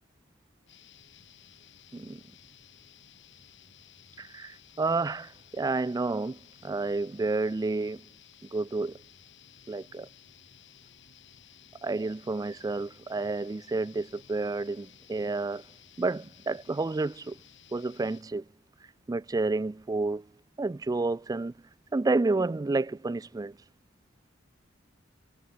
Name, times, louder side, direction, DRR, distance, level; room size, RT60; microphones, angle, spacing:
sound 1, 0.7-18.2, left 9 dB, 65° left, 2.6 m, -56 dB
voice 1, 4.2-8.0 8.5-9.0 9.7-10.1 11.8-15.6 16.0-17.4 17.7-18.4 19.1-20.2 20.6-21.5 21.9-23.5, right 3 dB, 20° right, 0.3 m, -30 dB
head